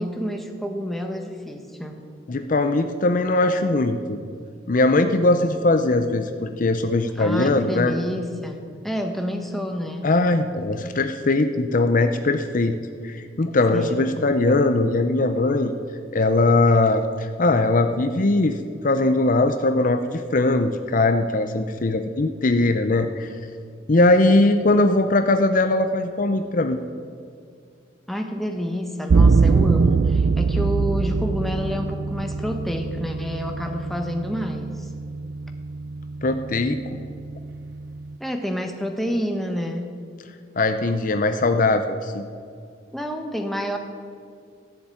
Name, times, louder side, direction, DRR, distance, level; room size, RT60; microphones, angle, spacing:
voice 1, 0.0-2.0 7.2-10.1 13.7-14.1 28.1-34.9 38.2-39.9 42.9-43.8, equal, ahead, 3 dB, 1.1 m, -29 dB
voice 2, 2.3-4.2 4.7-7.9 10.0-12.8 13.0-15.7 16.1-18.6 18.8-23.3 23.9-26.8 36.2-37.0 40.6-42.2, left 2 dB, 45° left, 8 dB, 0.6 m, -20 dB
sound 1, 29.1-38.1, right 4 dB, 60° right, 0.4 m, -23 dB
15.0 x 7.3 x 9.0 m, 2.3 s
head